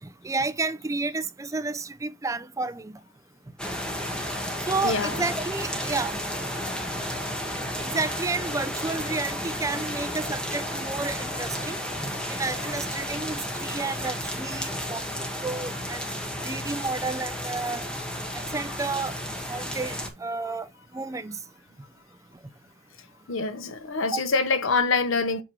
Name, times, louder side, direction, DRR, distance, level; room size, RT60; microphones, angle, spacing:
voice 1, 0.2-2.9 4.7-6.2 7.8-16.0 16.4-17.8 18.5-19.2 19.5-20.7 20.9-21.4 24.1-24.2, right 3 dB, 15° right, 0.4 m, -31 dB
sound 1, 3.6-20.1, equal, 5° left, 1.6 m, -32 dB
voice 2, 4.8-5.2 18.4-18.5 23.3-25.4, left 4 dB, 70° left, 1.0 m, -25 dB
7.8 x 3.6 x 4.5 m
head